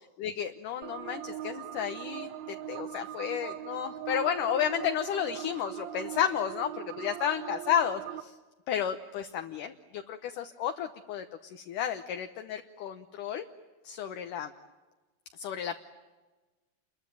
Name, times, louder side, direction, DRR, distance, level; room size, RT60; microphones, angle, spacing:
voice 1, 0.2-6.7 7.0-8.4 8.7-13.4 13.8-14.5 15.3-15.8, left 9 dB, 70° left, 7 dB, 2.3 m, -32 dB
sound 1, 0.8-8.2, right 11 dB, 70° right, 1.7 m, -40 dB
29.5 x 22.5 x 8.9 m, 1.2 s
omnidirectional pair, 4.3 m